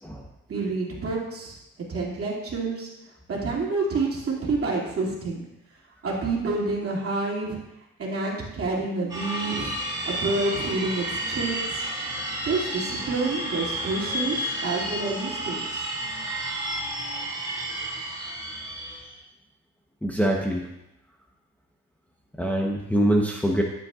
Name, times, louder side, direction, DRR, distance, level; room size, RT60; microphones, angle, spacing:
voice 1, 0.5-1.6 1.9-2.9 3.3-5.4 6.0-7.6 8.0-9.8 10.0-11.8 12.4-15.9, right 3 dB, 50° right, -3 dB, 2.6 m, -28 dB
sound 1, 9.1-19.2, right 1 dB, 15° right, 3.0 m, -31 dB
voice 2, 20.0-20.7 22.4-23.6, right 1 dB, 5° left, -1 dB, 1.0 m, -23 dB
11.5 x 7.9 x 2.5 m, 0.88 s
cardioid pair, 90°, 30 cm